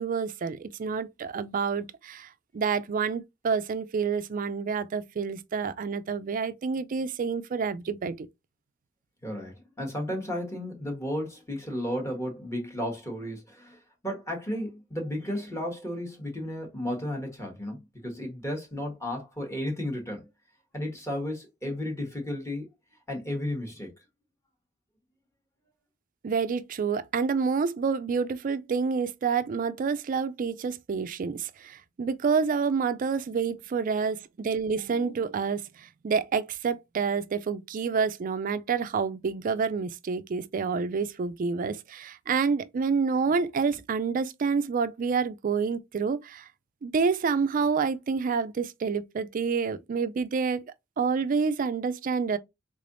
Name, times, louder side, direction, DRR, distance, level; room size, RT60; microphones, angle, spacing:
voice 1, 0.0-2.3 2.5-8.3 26.2-46.4 46.8-50.6 51.0-52.4, right 5 dB, 45° right, 0.4 m, -28 dB
voice 2, 9.2-20.3 20.7-22.7 23.1-23.9, left 1 dB, 15° left, 1.2 m, -33 dB
3.7 x 3.3 x 2.5 m
head